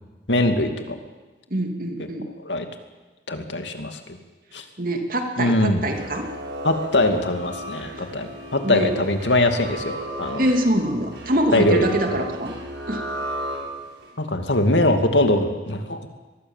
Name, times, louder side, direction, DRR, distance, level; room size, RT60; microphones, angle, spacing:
voice 1, 0.3-1.0 2.4-2.7 3.3-4.0 4.5-4.6 5.4-5.8 6.6-10.4 11.5-12.2 14.2-16.1, left 1 dB, 90° left, 6 dB, 2.5 m, -22 dB
voice 2, 1.5-2.3 4.8-6.3 7.9-8.0 8.6-8.9 10.4-12.5 12.9-13.0, right 1 dB, 50° right, 4 dB, 2.8 m, -24 dB
sound 1, 5.9-14.1, right 1 dB, 75° right, 7.0 m, -35 dB
24.0 x 21.0 x 7.4 m, 1.2 s
head